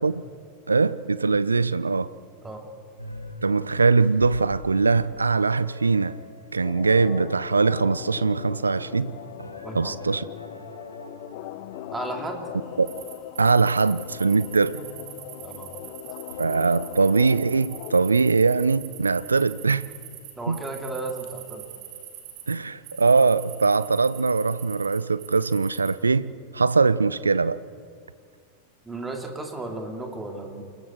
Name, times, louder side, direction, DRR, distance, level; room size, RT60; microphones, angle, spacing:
voice 1, 0.7-2.1 3.4-6.2 6.5-9.1 9.7-10.3 12.8-12.9 13.4-14.8 16.4-19.9 20.5-20.6 22.5-27.6, right 4 dB, 75° right, 0.5 m, -22 dB
sound 1, 3.0-13.4 13.8-15.7 16.1-16.4, equal, 85° left, 1.9 m, -43 dB
sound 2, 6.6-18.1, left 14 dB, 50° left, 0.8 m, -40 dB
voice 2, 9.6-10.2 11.9-12.5 15.4-15.9 20.4-21.7 28.8-30.6, right 2 dB, 10° right, 3.1 m, -34 dB
sound 3, 12.9-22.6 22.8-26.0, right 11 dB, 45° right, 3.0 m, -43 dB
28.5 x 21.0 x 4.7 m
figure-of-eight pair, 90°, 0 cm